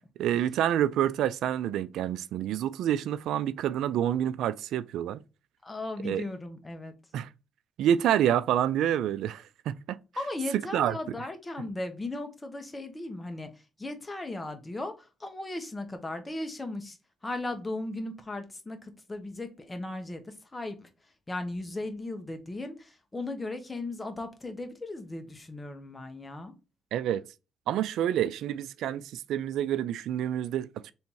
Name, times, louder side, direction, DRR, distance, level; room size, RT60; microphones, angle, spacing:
voice 1, 0.2-5.2 6.0-6.2 7.1-7.3 7.8-10.0 10.7-11.0 26.9-27.2 27.7-30.9, right 10 dB, 80° right, 0.3 m, -28 dB
voice 2, 5.6-6.9 10.1-17.0 17.2-20.9 21.3-26.5, left 2 dB, 20° left, 1.1 m, -37 dB
3.5 x 2.8 x 4.5 m
cardioid pair, 90°, 0 cm